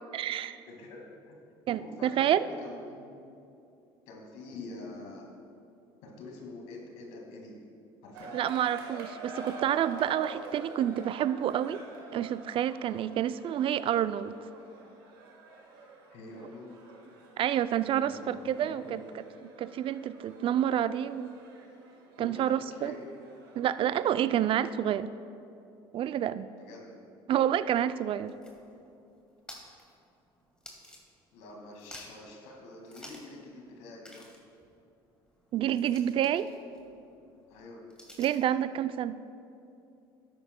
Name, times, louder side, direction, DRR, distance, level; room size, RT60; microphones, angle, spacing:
voice 1, 0.1-0.6 1.7-2.5 8.3-11.8 12.1-14.4 17.4-19.0 19.6-21.3 22.2-22.9 23.6-25.1 25.9-26.5 27.3-28.3 35.5-36.5 38.2-39.2, right 10 dB, 50° right, 14 dB, 0.4 m, -28 dB
voice 2, 0.7-1.4 1.8-3.2 4.1-5.3 6.0-7.6 8.0-8.4 16.1-16.8 18.0-18.3 18.6-19.0 22.2-23.0 26.6-27.0 31.3-34.3 37.5-37.8, left 2 dB, 75° left, 0 dB, 2.0 m, -46 dB
sound 1, 8.1-25.0, right 3 dB, 90° right, 1.4 m, -48 dB
sound 2, 28.0-31.5 31.7-32.3 32.9-33.4 33.7-33.8 34.0-38.5, equal, 5° left, 2.1 m, -52 dB
12.5 x 10.0 x 2.2 m, 2.6 s
hypercardioid pair, 70°, 12 cm